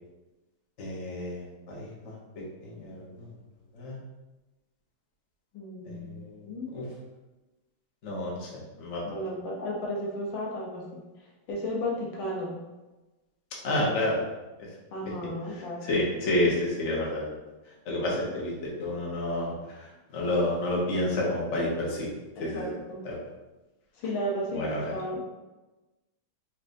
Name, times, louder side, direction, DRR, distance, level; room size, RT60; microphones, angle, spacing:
voice 1, 0.8-3.3 3.7-4.0 5.8-6.4 6.7-6.8 8.0-8.5 8.8-9.0 13.6-14.2 15.8-17.3 17.8-22.1 22.4-22.7 23.0-23.1 24.5-24.9, left 1 dB, 50° left, -4 dB, 0.8 m, -30 dB
voice 2, 5.5-6.8 9.1-11.0 11.5-12.6 14.9-16.1 22.4-23.1 23.9-25.2, equal, 70° left, -2 dB, 1.4 m, -34 dB
4.2 x 3.3 x 2.6 m, 1.1 s
omnidirectional pair, 2.4 m